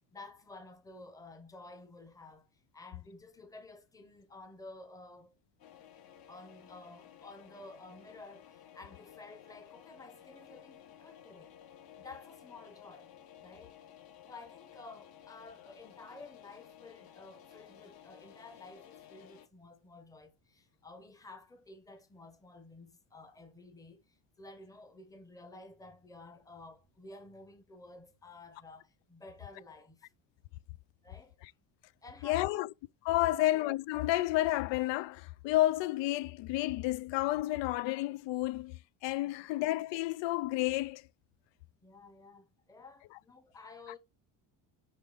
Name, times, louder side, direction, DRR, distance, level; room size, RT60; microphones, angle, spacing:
voice 1, 0.1-5.3 6.3-11.5 12.0-13.1 13.4-13.8 14.3-30.1 31.0-31.4 32.0-32.6 33.2-33.4 39.2-39.3 41.8-44.0, left 2 dB, 10° left, 0.8 m, -52 dB
sound 1, 5.6-19.5, left 10 dB, 50° left, 1.2 m, -55 dB
voice 2, 32.2-32.7 33.1-41.1, left 16 dB, 70° left, 0.5 m, -31 dB
5.6 x 5.2 x 3.9 m
cardioid pair, 175°, 46 cm